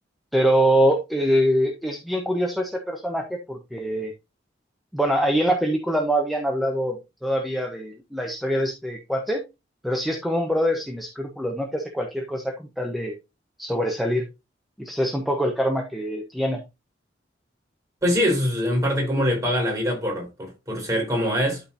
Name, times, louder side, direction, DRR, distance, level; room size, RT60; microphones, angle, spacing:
voice 1, 0.3-4.1 4.9-9.4 9.8-13.1 13.6-14.2 14.8-16.6, equal, ahead, 1.0 m, -24 dB
voice 2, 18.0-21.6, equal, 20° right, 4.2 m, -23 dB
12.0 x 4.5 x 2.8 m
head